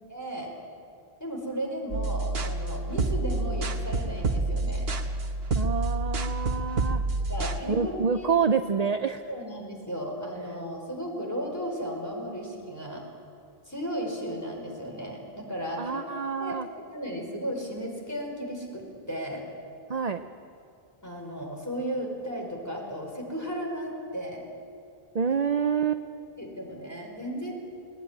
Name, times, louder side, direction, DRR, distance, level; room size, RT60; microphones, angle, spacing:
voice 1, 0.1-0.5 1.2-4.9 7.3-8.4 9.3-13.0 13.7-16.0 16.4-16.6 16.9-19.4 21.0-24.5 26.4-27.5, equal, 15° left, 0 dB, 5.2 m, -35 dB
sound 1, 1.9-7.6, right 2 dB, 75° right, 1.4 m, -28 dB
voice 2, 5.5-7.0 7.7-9.2 15.8-16.7 19.9-20.2 25.1-26.0, right 6 dB, 45° right, 8 dB, 0.7 m, -27 dB
20.5 x 20.5 x 9.9 m, 2.4 s
omnidirectional pair, 1.0 m